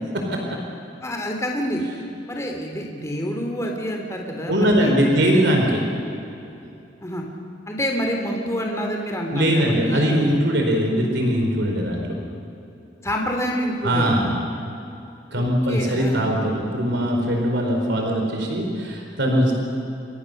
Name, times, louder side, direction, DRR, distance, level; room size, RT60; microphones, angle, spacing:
voice 1, 1.0-1.8 2.3-5.5 7.0-7.2 7.7-10.2 13.0-14.2 15.3-16.3, equal, 15° left, 1 dB, 3.2 m, -27 dB
voice 2, 4.5-5.8 9.3-12.0 13.8-14.3 15.3-19.5, equal, 65° right, 1 dB, 4.5 m, -21 dB
30.0 x 25.0 x 6.7 m, 2.8 s
head